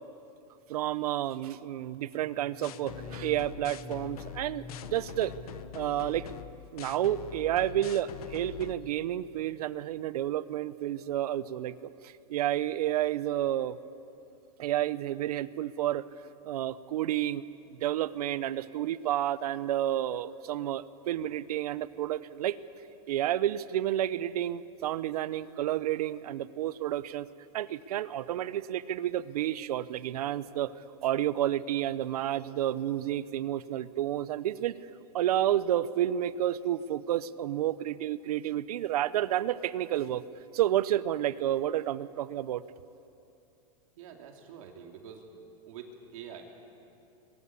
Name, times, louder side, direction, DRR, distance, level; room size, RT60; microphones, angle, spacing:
voice 1, 0.7-5.3 5.7-6.3 6.7-13.8 14.6-16.0 16.4-17.4 17.7-22.6 23.1-27.3 27.5-30.7 31.0-34.7 35.1-40.2 40.5-42.6, right 12 dB, 80° right, 16 dB, 0.9 m, -30 dB
sound 1, 2.2-8.1 8.4-8.9 9.2-9.6, left 4 dB, 10° left, 1.8 m, -50 dB
sound 2, 2.6-8.7, left 10 dB, 70° left, 1.3 m, -43 dB
voice 2, 44.0-45.3 45.7-46.4, right 7 dB, 60° right, 2 dB, 2.8 m, -46 dB
26.0 x 21.5 x 8.5 m, 2.8 s
supercardioid pair, 165°, 19 cm